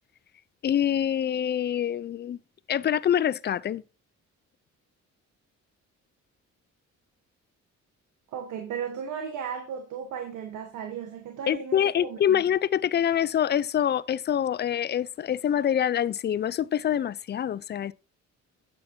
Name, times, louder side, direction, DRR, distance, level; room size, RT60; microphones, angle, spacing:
voice 1, 0.6-2.4 2.7-3.8 11.5-17.9, left 9 dB, 35° left, 0.4 m, -25 dB
voice 2, 8.3-12.4, right 7 dB, 80° right, 1.3 m, -35 dB
8.7 x 8.5 x 2.7 m
cardioid pair, 90°, 30 cm